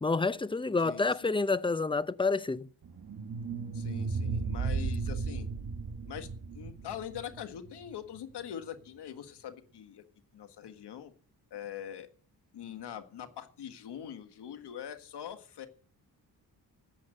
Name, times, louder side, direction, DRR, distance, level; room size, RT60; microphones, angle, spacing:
voice 1, 0.0-2.7, left 3 dB, 15° left, 0.7 m, -28 dB
voice 2, 0.8-1.4 3.7-5.5 6.1-6.3 6.5-10.0 10.3-11.1 11.5-12.1 12.5-15.7, left 9 dB, 80° left, 1.7 m, -43 dB
sound 1, 2.8-7.9, right 4 dB, 55° right, 1.7 m, -35 dB
14.0 x 8.6 x 6.4 m
cardioid pair, 75°, 40 cm